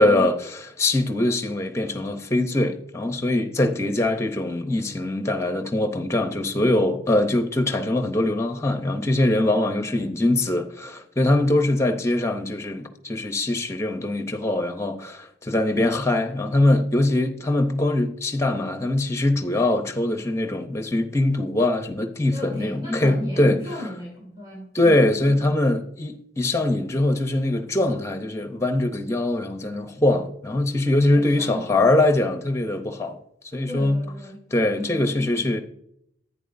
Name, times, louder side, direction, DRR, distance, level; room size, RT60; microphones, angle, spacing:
voice 1, 0.0-23.7 24.7-33.2 33.5-34.0 34.5-35.6, left 1 dB, 15° left, 0.7 m, -22 dB
voice 2, 9.8-10.1 22.3-25.1 31.1-31.8 33.7-34.4 34.7-35.1, left 1 dB, 25° right, 2.8 m, -37 dB
10.5 x 8.9 x 2.6 m
head